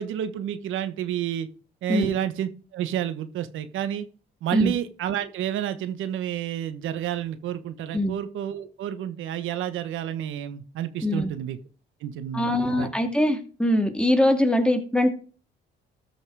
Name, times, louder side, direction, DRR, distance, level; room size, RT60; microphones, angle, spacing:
voice 1, 0.0-1.5 1.8-4.0 4.4-11.6 12.0-12.9, right 10 dB, 85° right, 12 dB, 1.2 m, -30 dB
voice 2, 12.3-15.1, left 1 dB, 5° left, 5 dB, 2.4 m, -22 dB
13.5 x 5.8 x 4.7 m, 0.37 s
cardioid pair, 90°, 20 cm